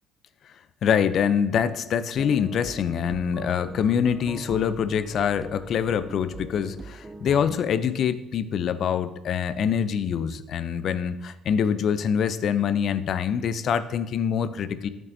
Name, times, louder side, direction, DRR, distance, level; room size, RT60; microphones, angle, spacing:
voice 1, 0.8-14.9, left 7 dB, 55° left, 13 dB, 0.4 m, -25 dB
sound 1, 2.1-7.6, right 2 dB, 20° right, 0.3 m, -41 dB
8.4 x 5.4 x 2.6 m, 1.0 s
cardioid pair, 95°, 0 cm